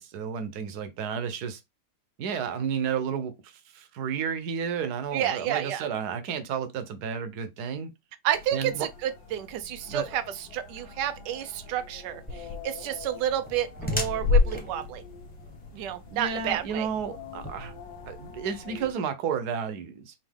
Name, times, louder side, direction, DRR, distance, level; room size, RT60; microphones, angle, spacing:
voice 1, 0.0-1.6 2.2-7.9 8.5-8.9 9.9-10.1 16.1-17.7 18.1-20.1, right 7 dB, 60° right, 1.1 m, -32 dB
voice 2, 5.1-5.8 8.2-15.0 15.7-16.9, right 11 dB, 85° right, 0.9 m, -30 dB
sound 1, 8.3-18.9, left 5 dB, 55° left, 1.4 m, -46 dB
sound 2, 12.3-18.4, left 4 dB, 5° left, 0.9 m, -29 dB
5.2 x 2.8 x 3.5 m
omnidirectional pair, 2.4 m